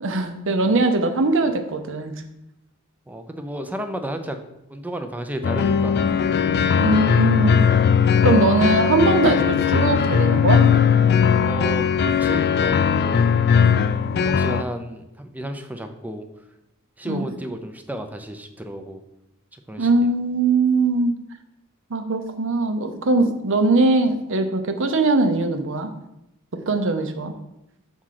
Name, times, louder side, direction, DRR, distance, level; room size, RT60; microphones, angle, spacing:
voice 1, 0.0-2.1 6.8-7.6 8.2-10.7 17.0-17.3 19.8-21.2 21.9-25.9 26.7-27.3, right 2 dB, 60° right, 7 dB, 0.7 m, -21 dB
voice 2, 3.1-4.4 4.7-6.0 11.4-13.3 14.1-16.3 17.0-19.0 19.5-19.9, right 1 dB, 5° right, 6 dB, 0.5 m, -32 dB
sound 1, 5.4-14.6, left 7 dB, 50° left, 0.3 m, -18 dB
6.1 x 3.7 x 5.8 m, 0.87 s
head